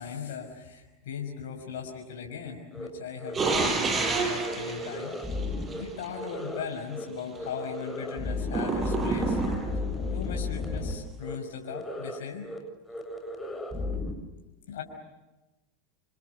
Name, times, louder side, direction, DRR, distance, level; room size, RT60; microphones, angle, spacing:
voice 1, 0.0-5.2 5.8-9.4 10.1-12.5 14.7-14.8, left 7 dB, 75° left, 2 dB, 5.9 m, -38 dB
sound 1, 2.7-2.9 3.2-3.7 4.0-4.1 4.4-5.8 6.1-6.6 6.9-7.0 7.3-10.9 11.2-11.4 11.7-12.2 12.4-12.6 12.9-14.1, left 2 dB, 10° left, 7.2 m, -34 dB
sound 2, 3.3-6.1 8.5-9.9, right 4 dB, 25° right, 6.8 m, -29 dB
29.5 x 28.5 x 6.9 m, 1.1 s
hypercardioid pair, 100°, 0 cm